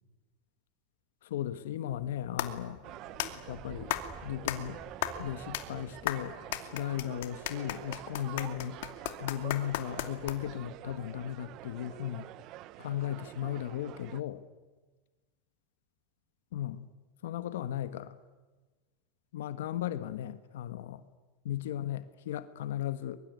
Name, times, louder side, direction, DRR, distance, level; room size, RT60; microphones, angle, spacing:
voice 1, 1.2-2.8 3.5-3.9 4.2-4.8 5.2-8.8 9.2-12.3 12.8-14.4 16.5-16.9 17.2-18.1 19.3-21.0 21.4-23.2, left 11 dB, 90° left, 13 dB, 1.4 m, -36 dB
sound 1, 1.9-10.7, left 14 dB, 70° left, 2.6 m, -37 dB
sound 2, 2.8-14.2, right 15 dB, 45° right, 1.0 m, -47 dB
sound 3, 3.5-7.0, right 2 dB, 10° right, 2.7 m, -52 dB
23.0 x 23.0 x 9.5 m, 1.3 s
supercardioid pair, 145°, 0 cm